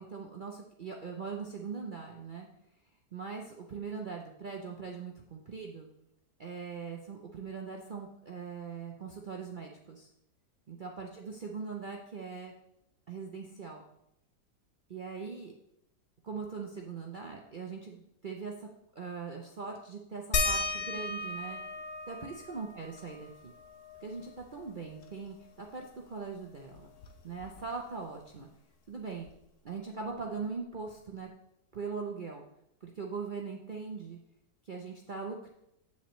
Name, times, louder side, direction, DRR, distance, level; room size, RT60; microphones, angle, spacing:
voice 1, 0.0-2.5 3.1-5.9 6.4-10.1 10.7-12.5 13.1-13.8 14.9-15.5 16.2-18.7 18.9-21.6 22.1-23.5 24.0-26.9 27.2-28.5 28.9-29.3 29.6-31.3 31.7-32.4 32.8-34.2 34.7-35.5, right 5 dB, 55° right, 1 dB, 0.5 m, -41 dB
sound 1, 20.3-25.5 25.8-25.9 26.2-28.0 29.3-29.4 30.1-30.2, left 3 dB, 55° left, 1.0 m, -37 dB
8.3 x 7.3 x 3.1 m, 0.80 s
omnidirectional pair, 1.8 m